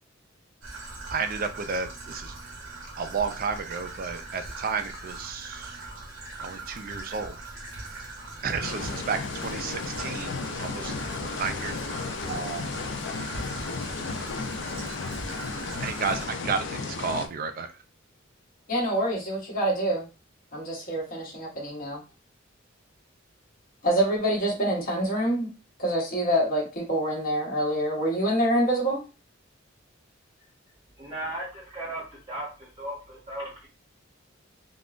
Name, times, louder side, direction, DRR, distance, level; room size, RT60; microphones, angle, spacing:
Traffic noise roadway noise / Trickle dribble, 0.6-16.3, right 2 dB, 80° right, 0.8 m, -41 dB
voice 1, 1.1-2.3 3.0-5.6 6.4-7.4 8.4-10.9 11.2-11.7 12.3-12.6 15.8-17.7, right 5 dB, 45° right, 8 dB, 0.4 m, -32 dB
sound 1, 8.6-17.3, left 4 dB, 65° left, 0.4 m, -34 dB
voice 2, 18.7-20.1 20.5-22.0 23.8-25.5 25.8-29.0, right 1 dB, 45° left, -3 dB, 1.1 m, -26 dB
voice 3, 31.0-33.7, right 1 dB, 25° right, -4 dB, 0.7 m, -36 dB
3.6 x 2.0 x 2.4 m, 0.31 s
head